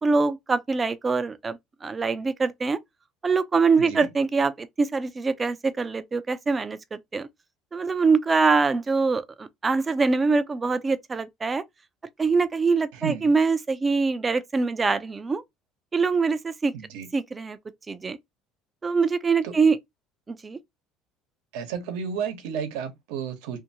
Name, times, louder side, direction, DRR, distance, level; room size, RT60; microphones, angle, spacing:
voice 1, 0.0-2.8 3.2-7.3 7.7-11.6 12.2-15.4 15.9-16.7 17.1-17.6 17.9-18.2 18.8-19.8 20.3-20.6, right 4 dB, 20° right, 0.3 m, -24 dB
voice 2, 3.8-4.1 12.9-13.3 16.7-17.1 19.4-19.5 21.5-23.6, right 7 dB, 85° right, 0.9 m, -32 dB
2.6 x 2.6 x 2.7 m
cardioid pair, 140°, 0 cm